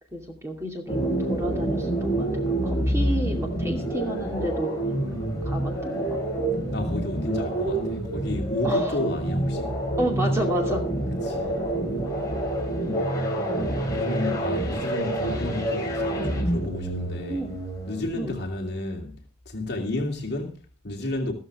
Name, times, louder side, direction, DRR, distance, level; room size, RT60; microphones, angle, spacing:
voice 1, 0.1-4.8 5.4-6.6 8.6-9.1 10.0-10.8 12.8-13.1 17.3-17.5 18.1-18.4, right 1 dB, 15° right, 2.5 m, -31 dB
sound 1, 0.9-18.0, right 1 dB, 15° left, 4.2 m, -27 dB
voice 2, 6.7-9.7 11.3-11.7 13.0-13.6 13.9-17.4 17.9-19.2 19.5-21.3, left 2 dB, 55° left, 2.6 m, -32 dB
14.0 x 13.0 x 3.6 m
head